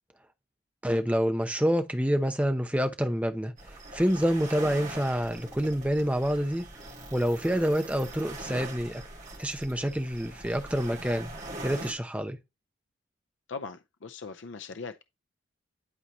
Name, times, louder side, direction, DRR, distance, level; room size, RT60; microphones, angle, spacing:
voice 1, 0.8-6.7 7.1-9.0 9.4-11.3 11.6-12.4, equal, 5° right, 0.7 m, -27 dB
sound 1, 3.6-11.9, right 2 dB, 40° right, 2.4 m, -42 dB
voice 2, 13.5-15.0, left 4 dB, 65° left, 0.5 m, -40 dB
11.0 x 4.2 x 3.0 m
head